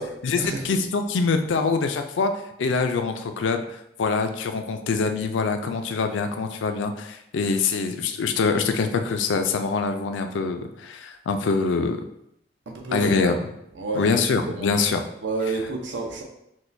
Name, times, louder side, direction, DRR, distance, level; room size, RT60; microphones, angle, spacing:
voice 1, 0.2-2.3 2.6-12.0 12.9-13.4 13.9-15.0, left 4 dB, 90° left, 7 dB, 0.4 m, -24 dB
voice 2, 12.7-13.3 13.8-14.2 14.5-14.7 15.2-16.2, right 3 dB, 80° right, 2 dB, 0.7 m, -29 dB
6.1 x 2.2 x 2.6 m, 0.79 s
head